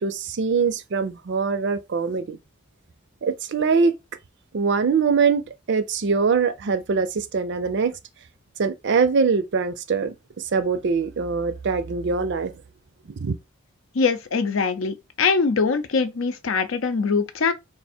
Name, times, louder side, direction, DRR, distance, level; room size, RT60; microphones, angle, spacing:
voice 1, 0.0-2.4 3.2-3.9 4.5-5.4 5.7-7.9 8.6-10.1 10.5-12.5 13.2-13.4, right 5 dB, 60° right, 0.5 m, -22 dB
voice 2, 13.9-17.5, left 5 dB, 70° left, 0.6 m, -22 dB
3.4 x 2.5 x 4.2 m
head